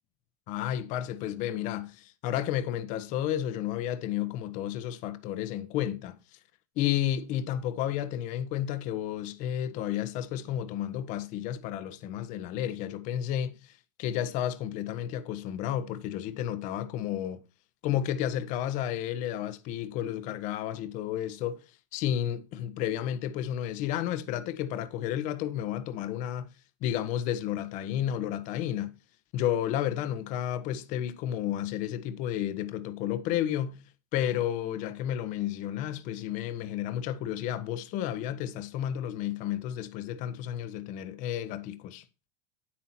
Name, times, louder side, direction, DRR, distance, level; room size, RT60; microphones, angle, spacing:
voice 1, 0.5-6.4 6.8-17.4 17.8-21.6 21.9-26.5 26.8-28.9 29.3-33.8 34.1-42.0, left 11 dB, 45° left, 1.2 m, -32 dB
9.3 x 8.6 x 4.4 m
supercardioid pair, 140°, 18 cm